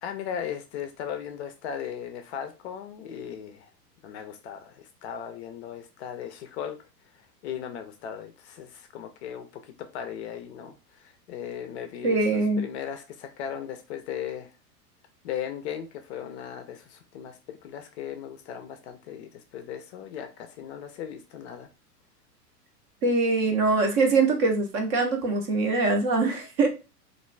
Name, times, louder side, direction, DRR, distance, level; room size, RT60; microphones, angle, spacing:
voice 1, 0.0-3.7 4.0-6.8 7.1-14.5 15.2-21.7, left 9 dB, 45° left, 0.4 m, -37 dB
voice 2, 12.0-12.6 23.0-26.7, right 3 dB, 30° right, 0.6 m, -23 dB
2.5 x 2.2 x 3.1 m
hypercardioid pair, 115°, 49 cm